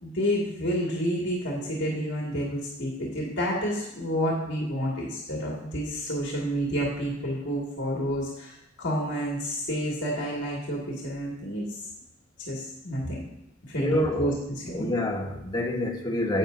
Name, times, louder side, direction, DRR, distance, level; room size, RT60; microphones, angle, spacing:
voice 1, 0.0-11.8 12.5-13.2 13.7-14.9, equal, 65° left, -3 dB, 2.0 m, -29 dB
voice 2, 13.8-14.3 14.7-16.4, left 1 dB, 20° left, 1 dB, 1.1 m, -27 dB
11.0 x 8.6 x 2.6 m, 0.84 s
head